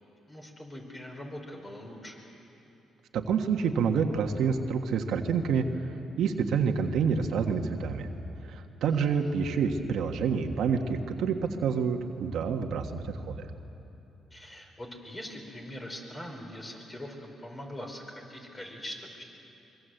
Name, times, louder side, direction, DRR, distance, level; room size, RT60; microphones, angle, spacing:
voice 1, 0.3-2.2 8.9-9.3 14.3-19.2, left 1 dB, 20° left, 2 dB, 5.0 m, -42 dB
voice 2, 3.1-5.6 6.2-8.1 8.4-13.5, right 6 dB, 75° right, 4 dB, 1.5 m, -28 dB
24.5 x 23.0 x 8.0 m, 3.0 s
cardioid pair, 90°, 0 cm